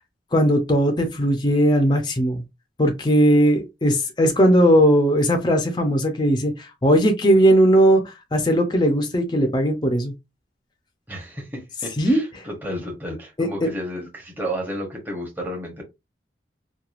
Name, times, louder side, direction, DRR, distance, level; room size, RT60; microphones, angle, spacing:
voice 1, 0.3-2.4 2.8-10.1 12.0-12.2 13.4-13.7, equal, 25° left, 0.5 m, -18 dB
voice 2, 11.1-15.8, equal, 10° right, 0.9 m, -32 dB
3.0 x 2.3 x 2.4 m
head